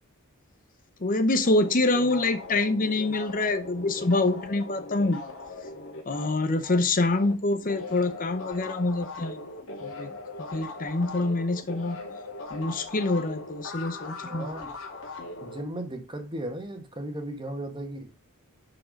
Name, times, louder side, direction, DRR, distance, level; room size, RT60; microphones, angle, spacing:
voice 1, 1.0-5.2 6.1-9.4 9.8-10.1 10.5-12.0 12.5-14.5, left 2 dB, 40° left, 0.8 m, -26 dB
sound 1, 1.4-7.3 7.6-15.6, left 3 dB, 60° left, 3.0 m, -40 dB
voice 2, 14.2-14.7 15.4-18.1, right 1 dB, 20° right, 1.7 m, -36 dB
11.5 x 4.9 x 5.2 m
head